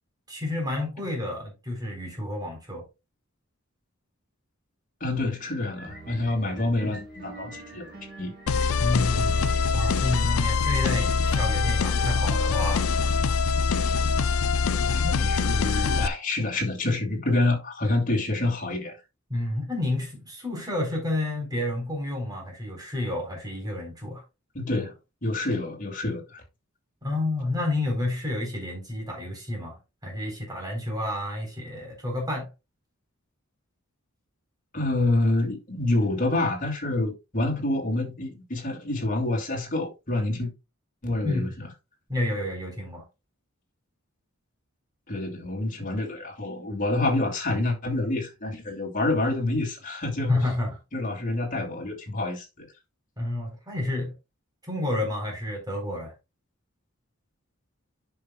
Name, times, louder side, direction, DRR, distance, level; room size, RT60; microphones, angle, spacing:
voice 1, 0.3-2.8 8.8-9.4 9.7-12.9 14.8-15.2 19.3-24.2 27.0-29.8 30.0-32.5 41.2-41.5 42.1-43.0 50.3-50.8 53.2-54.1 54.6-56.1, left 1 dB, 20° right, 4.0 m, -30 dB
voice 2, 5.0-7.9 8.2-8.3 14.9-19.0 24.5-24.9 25.2-26.4 34.7-40.5 41.0-41.7 45.1-50.4 50.9-52.7, left 2 dB, 40° left, 2.5 m, -27 dB
sound 1, 5.7-13.1, left 1 dB, 5° right, 3.5 m, -48 dB
sound 2, 5.8-13.4, right 2 dB, 50° right, 2.1 m, -45 dB
New Hope Loop, 8.5-16.1, left 5 dB, 90° left, 0.5 m, -24 dB
10.5 x 5.9 x 2.4 m
head